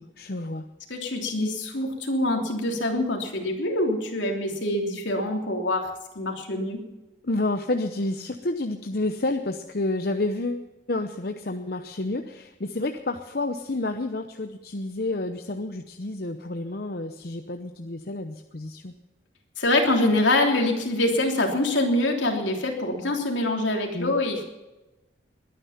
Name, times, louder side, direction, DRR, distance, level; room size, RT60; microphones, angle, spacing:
voice 1, 0.2-0.6 7.2-18.9 23.9-24.1, left 2 dB, 50° left, 6 dB, 0.8 m, -30 dB
voice 2, 0.9-5.9 6.1-6.8 19.6-24.4, left 1 dB, 80° left, 2 dB, 3.3 m, -25 dB
21.0 x 10.0 x 5.9 m, 1.1 s
head